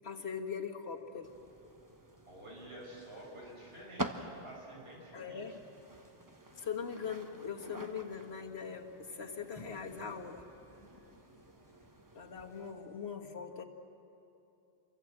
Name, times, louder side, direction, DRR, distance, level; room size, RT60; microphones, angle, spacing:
voice 1, 0.0-1.3 5.1-5.6 6.6-10.5 12.1-13.6, left 6 dB, 90° left, 3 dB, 1.9 m, -41 dB
sound 1, 0.9-13.1, equal, 5° left, 5.3 m, -63 dB
sound 2, 1.2-12.7, right 1 dB, 20° right, 1.1 m, -48 dB
voice 2, 2.3-5.6, right 1 dB, 75° right, -3 dB, 5.9 m, -50 dB
29.0 x 24.0 x 7.6 m, 2.8 s
omnidirectional pair, 1.0 m